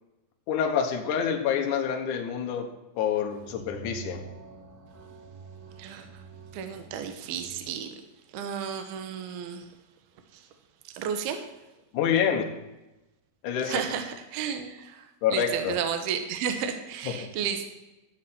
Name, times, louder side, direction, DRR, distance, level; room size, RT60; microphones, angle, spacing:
voice 1, 0.5-2.7 3.0-4.2 11.9-12.5 13.4-13.8 15.2-15.7, left 8 dB, 65° left, 2 dB, 2.1 m, -27 dB
sound 1, 3.1-7.7, right 5 dB, 45° right, 2.6 m, -46 dB
voice 2, 5.8-6.2 6.5-8.0 8.3-9.7 10.3-10.5 10.9-11.4 13.6-17.7, right 7 dB, 70° right, 7 dB, 2.7 m, -33 dB
12.5 x 7.4 x 5.9 m, 1.0 s
omnidirectional pair, 5.2 m